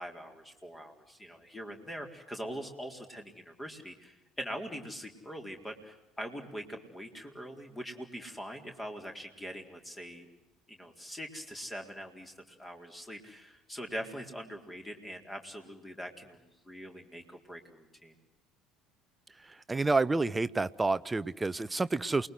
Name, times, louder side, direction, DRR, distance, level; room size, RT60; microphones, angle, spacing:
voice 1, 0.0-10.3 10.7-18.1, equal, 15° left, 4 dB, 4.3 m, -43 dB
voice 2, 19.7-22.3, right 3 dB, 15° right, 16 dB, 0.9 m, -29 dB
28.5 x 21.0 x 7.9 m, 0.93 s
figure-of-eight pair, 60°, 0 cm